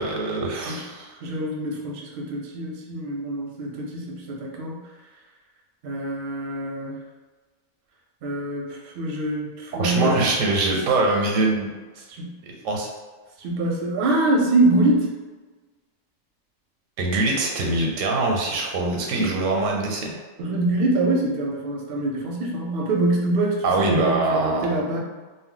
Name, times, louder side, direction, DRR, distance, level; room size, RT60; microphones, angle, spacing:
voice 1, 0.0-1.1 9.8-11.7 12.4-12.9 17.0-20.1 23.6-24.8, right 2 dB, 90° right, 0 dB, 1.0 m, -23 dB
voice 2, 1.2-4.8 5.8-7.0 8.2-10.3 12.1-12.3 13.4-15.1 18.8-19.3 20.4-25.0, right 2 dB, 60° right, -1 dB, 0.7 m, -25 dB
2.3 x 2.0 x 3.7 m, 1.3 s
omnidirectional pair, 1.3 m